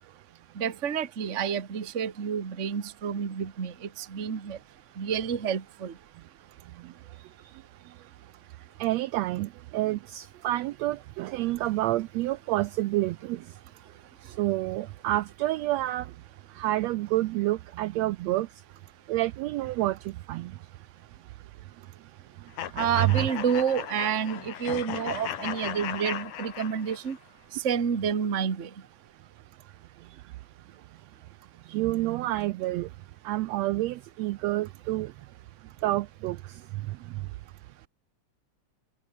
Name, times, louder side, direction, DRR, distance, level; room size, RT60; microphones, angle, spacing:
voice 1, 0.6-4.6 5.0-5.9 22.7-27.2 27.5-28.7, right 7 dB, 30° right, 1.5 m, -29 dB
voice 2, 8.8-13.5 14.2-16.1 16.5-18.5 19.1-20.5 23.0-23.3 31.7-32.9 33.2-35.1 35.8-37.2, right 16 dB, 80° right, 1.7 m, -29 dB
sound 1, 22.6-27.2, left 10 dB, 90° left, 3.2 m, -36 dB
omnidirectional pair, 3.4 m